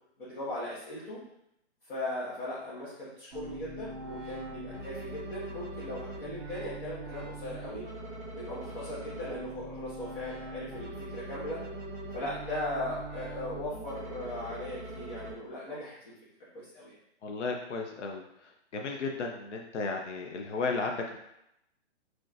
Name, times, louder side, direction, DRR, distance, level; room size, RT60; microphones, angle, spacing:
voice 1, 0.2-1.2 1.8-7.8 8.3-11.6 12.1-16.1 16.5-17.0, left 1 dB, 50° left, -10 dB, 1.4 m, -38 dB
sound 1, 3.3-15.3, right 1 dB, 15° right, 1.3 m, -42 dB
voice 2, 17.2-21.2, left 4 dB, 80° left, 2 dB, 0.7 m, -34 dB
4.0 x 3.1 x 2.5 m, 0.82 s
hypercardioid pair, 170°, 35 cm